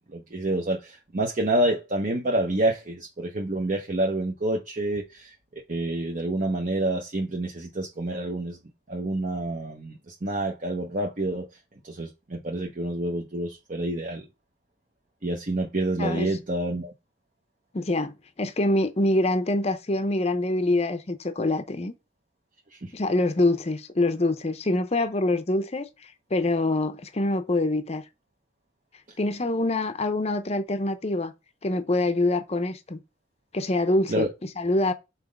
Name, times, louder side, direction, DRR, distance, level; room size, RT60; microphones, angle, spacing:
voice 1, 0.1-8.6 8.9-11.6 11.8-14.2 15.2-16.9 22.7-22.9 34.1-34.3, right 1 dB, 40° right, 0.8 m, -28 dB
voice 2, 17.7-21.9 22.9-28.0 29.2-31.3 31.6-33.0 33.5-34.3 34.6-34.9, left 2 dB, 35° left, 0.7 m, -25 dB
5.9 x 3.9 x 5.2 m
head